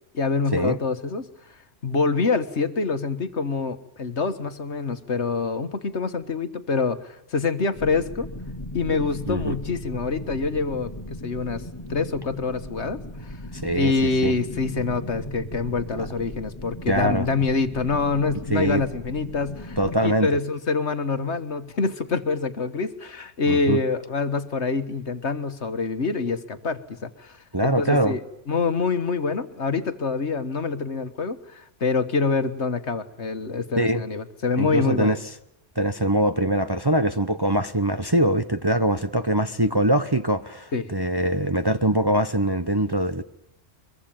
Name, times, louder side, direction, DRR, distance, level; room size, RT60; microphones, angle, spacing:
voice 1, 0.1-1.3 1.8-8.3 8.7-11.6 11.9-13.4 13.7-19.8 20.0-27.4 27.6-35.2 40.7-40.9, left 4 dB, 65° left, 1.8 m, -26 dB
sound 1, 7.7-20.0, left 1 dB, 20° left, 2.2 m, -37 dB
voice 2, 13.6-14.3 16.0-16.1 16.9-17.3 18.5-18.8 19.8-20.3 23.5-23.8 27.5-28.2 33.8-34.0 34.6-35.2 35.8-43.2, right 1 dB, 20° right, 0.9 m, -23 dB
23.5 x 23.0 x 8.8 m
omnidirectional pair, 1.3 m